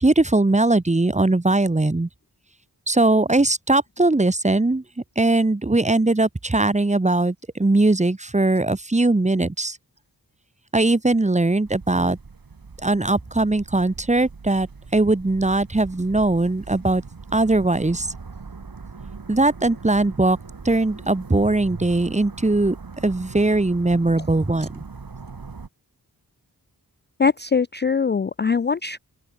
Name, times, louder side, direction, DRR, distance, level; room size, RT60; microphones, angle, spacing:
voice 1, 0.0-2.1 2.9-4.8 5.2-9.8 10.7-12.2 12.8-14.7 14.9-17.0 17.3-18.1 19.3-20.4 20.6-22.7 23.0-24.8, right 2 dB, 20° right, 1.0 m, -20 dB
sound 1, 11.7-25.7, right 4 dB, 60° right, 2.9 m, -40 dB
voice 2, 27.2-29.0, left 5 dB, 30° left, 0.4 m, -22 dB
open air
wide cardioid pair, 75°, 39 cm